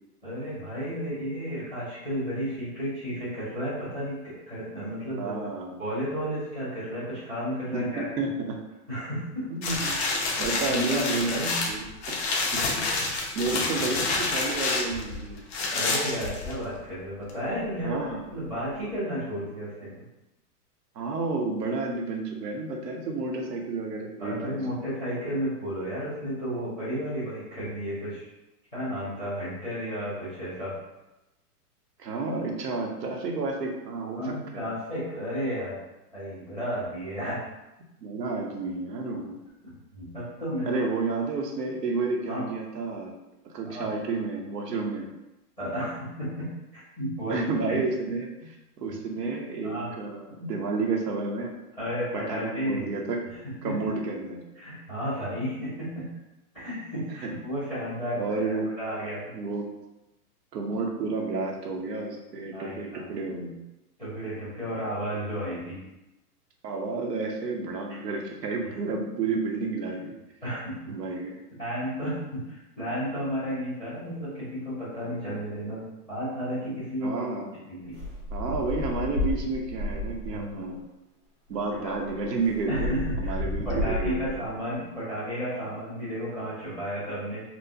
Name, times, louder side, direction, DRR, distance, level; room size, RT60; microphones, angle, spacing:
voice 1, 0.2-5.3 5.8-8.0 8.9-9.8 10.3-10.4 10.6-11.7 15.7-18.0 18.3-19.9 24.2-28.3 28.7-30.8 34.2-35.8 36.1-37.4 39.6-40.7 42.3-42.4 43.6-43.9 45.6-47.4 47.7-47.8 49.6-49.9 51.8-52.8 53.3-53.4 53.6-53.8 54.5-56.1 56.5-59.3 62.5-63.1 64.0-65.8 69.9-70.0 70.4-71.2 71.6-77.2 77.7-78.0 80.3-80.6 81.8-81.9 82.7-83.3 83.6-87.4, equal, ahead, -25 dB, 0.4 m, -33 dB
voice 2, 5.2-5.8 7.7-8.6 9.5-10.0 10.4-11.4 11.7-13.1 13.3-15.4 17.8-18.2 20.9-24.6 32.0-34.7 38.0-39.4 40.6-43.1 43.4-45.1 47.3-51.5 52.1-53.3 53.6-54.4 57.2-57.3 58.2-58.7 59.3-59.7 60.5-63.6 66.6-70.1 70.9-71.4 77.0-77.5 77.8-77.9 78.3-80.8 81.5-84.4, right 3 dB, 90° right, 1 dB, 1.0 m, -31 dB
sound 1, 9.6-16.8 17.3-17.4, left 3 dB, 45° left, 0.7 m, -28 dB
sound 2, 77.9-80.5 81.5-81.6 81.9-84.5, left 2 dB, 25° right, 0.8 m, -32 dB
4.4 x 2.1 x 2.7 m, 0.97 s
hypercardioid pair, 155°, 47 cm